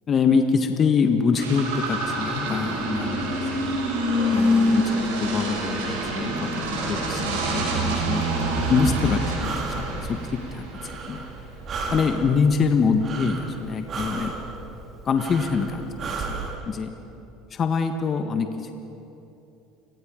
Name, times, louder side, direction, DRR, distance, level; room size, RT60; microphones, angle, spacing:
voice 1, 0.1-3.8 4.3-6.5 6.9-8.3 8.7-11.3 11.9-14.4 15.0-16.4 16.6-16.9 17.5-18.7, left 5 dB, 40° left, 6 dB, 1.4 m, -25 dB
sound 1, 1.3-10.9, right 1 dB, 80° right, 6.1 m, -26 dB
Breathing, 8.2-16.5, right 4 dB, 45° right, 3.2 m, -35 dB
30.0 x 17.5 x 5.2 m, 2.9 s
hypercardioid pair, 80°, 0 cm